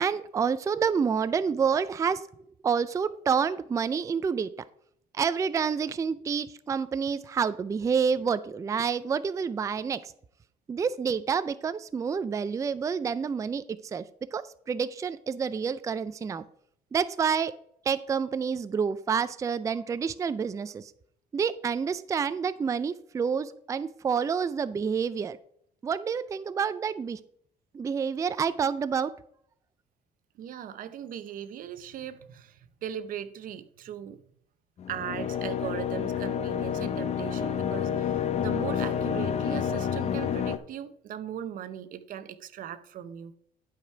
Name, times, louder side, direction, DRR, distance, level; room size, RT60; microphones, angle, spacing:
voice 1, 0.0-2.3 2.6-4.5 5.1-10.1 10.7-16.4 16.9-17.6 17.9-20.9 21.3-25.4 25.8-27.2 27.7-29.1, right 6 dB, 20° right, 0.3 m, -28 dB
voice 2, 30.4-34.2 34.9-43.3, right 10 dB, 60° right, 0.8 m, -38 dB
sound 1, 34.8-40.6, left 8 dB, 45° left, 0.6 m, -29 dB
11.5 x 5.0 x 4.5 m
cardioid pair, 120°, 16 cm